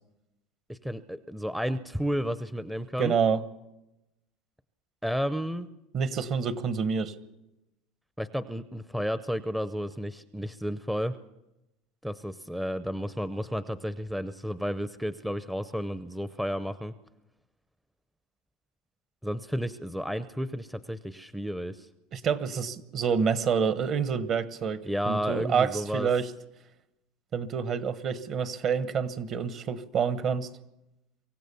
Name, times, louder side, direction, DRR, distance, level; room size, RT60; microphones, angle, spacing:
voice 1, 0.7-3.1 5.0-5.7 8.2-11.2 12.0-16.9 19.2-21.9 24.8-26.1, equal, 5° right, 12 dB, 0.6 m, -32 dB
voice 2, 3.0-3.4 5.9-7.1 22.1-26.3 27.3-30.5, right 6 dB, 45° right, 13 dB, 1.2 m, -28 dB
24.5 x 15.5 x 7.0 m, 0.94 s
supercardioid pair, 120°, 0 cm